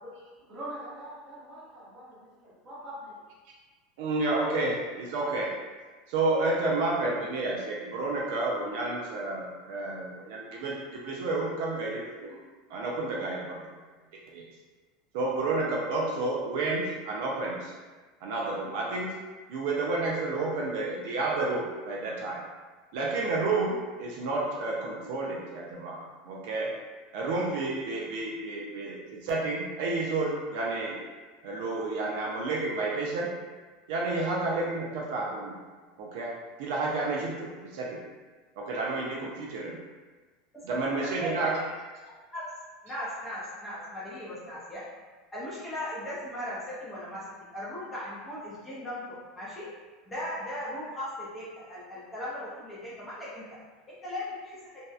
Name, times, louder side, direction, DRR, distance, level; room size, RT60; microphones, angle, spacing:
voice 1, 0.0-3.1, right 1 dB, 20° right, -9 dB, 0.8 m, -43 dB
voice 2, 4.0-5.5 6.1-12.4 12.7-13.6 14.1-14.4 15.1-17.7 18.2-19.1 19.5-22.4 22.9-26.0 26.3-26.7 27.1-31.0 31.4-33.3 33.9-35.6 36.0-36.3 36.6-38.0 38.6-39.8 40.6-41.5, right 2 dB, 55° right, -3 dB, 0.4 m, -30 dB
voice 3, 42.8-44.9 45.3-47.2 47.5-49.7 50.1-53.4 54.0-54.6, left 1 dB, 10° left, -9 dB, 0.5 m, -37 dB
2.6 x 2.0 x 2.3 m, 1.3 s
supercardioid pair, 170°, 0 cm